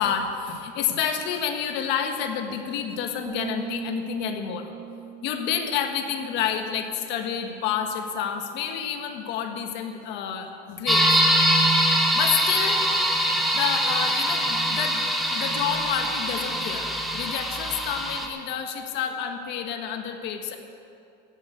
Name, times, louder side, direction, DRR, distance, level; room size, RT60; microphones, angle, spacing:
voice 1, 0.0-4.7 5.2-11.1 12.1-12.9 13.5-15.0 15.3-20.6, left 8 dB, 55° left, 5 dB, 1.5 m, -29 dB
sound 1, 3.3-7.0, right 5 dB, 40° right, 2.8 m, -38 dB
sound 2, 10.9-18.3, equal, ahead, 1.2 m, -23 dB
14.0 x 8.2 x 8.3 m, 2.5 s
cardioid pair, 150°, 21 cm